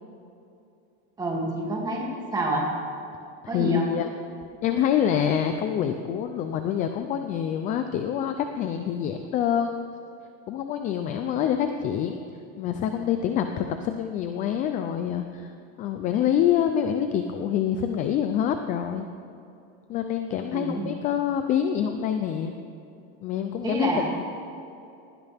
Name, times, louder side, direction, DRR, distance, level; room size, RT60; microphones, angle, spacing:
voice 1, 1.2-2.7 3.5-3.8 20.5-20.9 23.6-24.1, right 1 dB, 10° right, -3 dB, 2.6 m, -28 dB
voice 2, 3.5-4.1 4.6-9.8 10.5-12.2 12.6-15.5 15.8-19.1 19.9-22.6 23.2-23.9 24.2-24.3, left 9 dB, 25° left, 7 dB, 0.5 m, -26 dB
20.0 x 16.5 x 3.5 m, 2.7 s
supercardioid pair, 170°, 32 cm